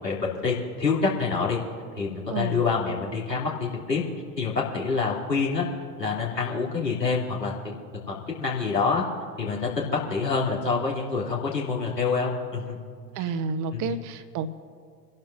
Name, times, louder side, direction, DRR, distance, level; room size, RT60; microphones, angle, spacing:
voice 1, 0.0-1.6 2.0-4.0 4.4-5.6 6.0-7.7 8.1-9.0 9.4-12.8 13.2-13.3 13.7-14.0, left 4 dB, 85° left, -5 dB, 3.0 m, -27 dB
voice 2, 2.3-2.6 13.2-14.5, right 5 dB, 40° right, 10 dB, 1.0 m, -30 dB
29.0 x 12.0 x 2.6 m, 2.1 s
figure-of-eight pair, 70°, 48 cm